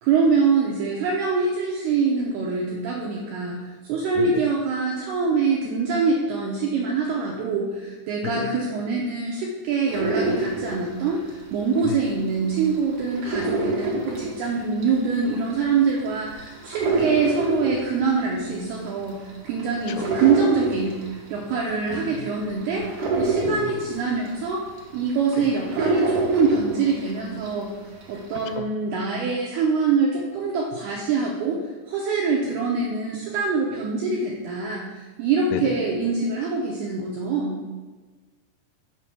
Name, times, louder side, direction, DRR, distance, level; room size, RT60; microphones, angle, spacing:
voice 1, 0.0-3.6 3.8-21.0 21.3-22.8 23.2-24.6 24.9-27.7 28.1-31.6 31.9-37.6, right 5 dB, 80° right, -2 dB, 2.3 m, -24 dB
sound 1, 9.9-12.1 12.5-27.6 28.0-28.6, right 2 dB, 65° right, 2.0 m, -27 dB
voice 2, 21.9-22.2 23.4-23.7 28.6-28.7 35.5-35.6, left 11 dB, 85° left, 10 dB, 3.1 m, -31 dB
6.8 x 5.7 x 6.1 m, 1.3 s
omnidirectional pair, 5.6 m